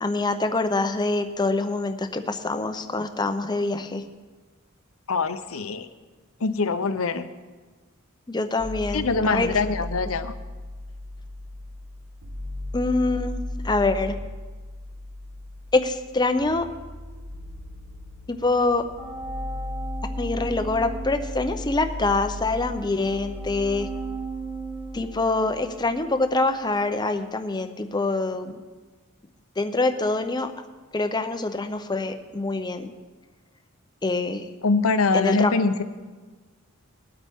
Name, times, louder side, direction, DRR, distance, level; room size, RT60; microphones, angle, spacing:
voice 1, 0.0-4.0 8.3-9.5 12.7-14.2 15.7-16.7 18.3-18.8 20.2-23.9 24.9-28.6 29.6-30.5 30.9-32.9 34.0-34.4 35.1-35.5, left 2 dB, 20° left, 8 dB, 0.7 m, -25 dB
voice 2, 5.1-5.9 6.4-7.3 8.9-10.3 34.6-35.8, left 4 dB, 80° left, 11 dB, 0.8 m, -23 dB
sound 1, 8.6-26.5, left 1 dB, 70° right, 1.0 m, -36 dB
sound 2, 19.0-25.9, right 4 dB, 15° right, 3.8 m, -38 dB
20.5 x 8.5 x 3.6 m, 1.3 s
head